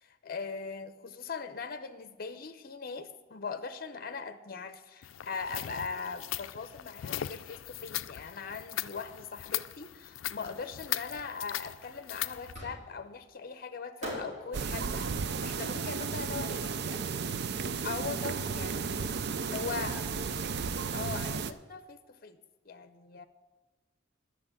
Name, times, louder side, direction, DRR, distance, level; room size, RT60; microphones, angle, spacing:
voice 1, 0.0-16.7 17.8-19.2 19.5-19.9 20.9-22.4 22.6-23.3, left 5 dB, 50° left, 11 dB, 0.7 m, -40 dB
sound 1, 5.0-12.5, left 13 dB, 85° left, 0.4 m, -39 dB
Fireworks, 12.5-13.2 14.0-17.1, equal, 40° right, 5.1 m, -45 dB
sound 2, 14.5-21.5, right 5 dB, 55° right, 0.5 m, -34 dB
voice 2, 16.6-17.0 19.4-20.2, equal, 10° right, -3 dB, 2.4 m, -48 dB
11.5 x 6.5 x 8.8 m, 1.2 s
head